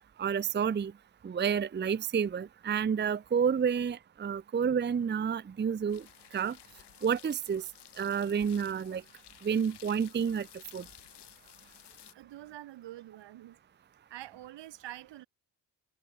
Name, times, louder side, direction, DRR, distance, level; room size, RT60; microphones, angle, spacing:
voice 1, 0.2-0.9 1.2-6.0 6.3-6.6 7.0-7.6 8.0-9.0 9.4-10.5 10.7-10.8, right 7 dB, 25° right, 0.7 m, -29 dB
sound 1, 5.9-12.1, left 13 dB, 70° left, 1.6 m, -55 dB
voice 2, 12.1-13.6 14.1-15.3, right 14 dB, 85° right, 3.9 m, -46 dB
cardioid pair, 90°, 41 cm